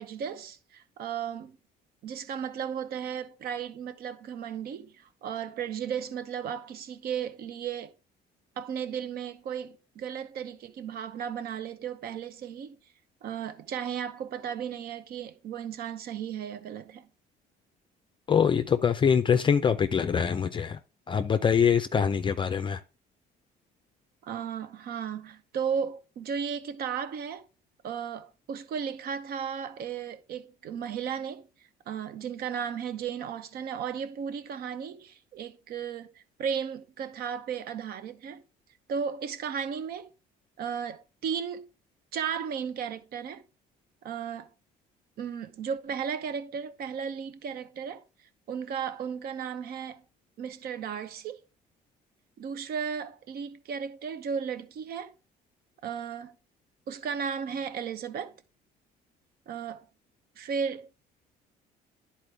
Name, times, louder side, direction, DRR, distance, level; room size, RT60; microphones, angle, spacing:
voice 1, 0.0-1.6 2.0-7.9 8.6-12.8 13.2-17.1 24.2-27.5 27.8-31.5 31.9-36.1 36.4-38.4 38.9-40.1 40.6-41.7 42.1-43.4 44.0-44.5 45.2-48.0 48.5-50.0 50.4-51.4 52.4-55.1 55.8-56.3 56.9-58.3 59.5-59.9 60.4-60.9, right 7 dB, 65° right, 0.8 m, -35 dB
voice 2, 18.3-20.8 21.1-22.8, left 7 dB, 30° left, 0.4 m, -24 dB
10.5 x 4.4 x 3.3 m
cardioid pair, 110°, 17 cm